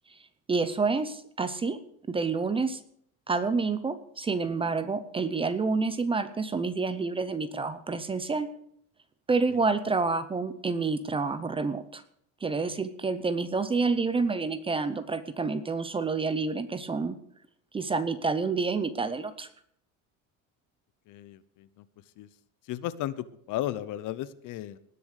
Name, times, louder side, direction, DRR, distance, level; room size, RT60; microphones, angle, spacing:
voice 1, 0.5-1.8 2.1-2.8 3.3-8.5 9.3-12.0 12.4-17.1 17.7-19.5, right 4 dB, 15° right, 12 dB, 0.6 m, -28 dB
voice 2, 21.1-21.8 22.2-22.3 22.6-24.8, left 13 dB, 60° left, 16 dB, 0.9 m, -35 dB
19.0 x 7.0 x 6.5 m, 0.67 s
cardioid pair, 160°, 36 cm